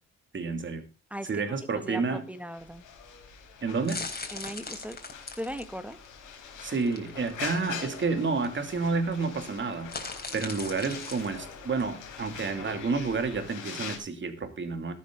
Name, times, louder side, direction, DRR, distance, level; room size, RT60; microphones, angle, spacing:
voice 1, 0.3-0.8 1.3-2.3 3.6-4.1 6.6-10.0 10.3-14.9, right 4 dB, 40° right, 2.8 m, -30 dB
voice 2, 1.1-2.8 4.3-5.0 5.4-6.0, equal, 5° right, 1.4 m, -38 dB
sound 1, 1.6-14.0, left 7 dB, 85° left, 4.5 m, -44 dB
sound 2, 2.6-13.4, left 3 dB, 30° left, 4.0 m, -42 dB
13.5 x 12.0 x 3.9 m
cardioid pair, 90°, 30 cm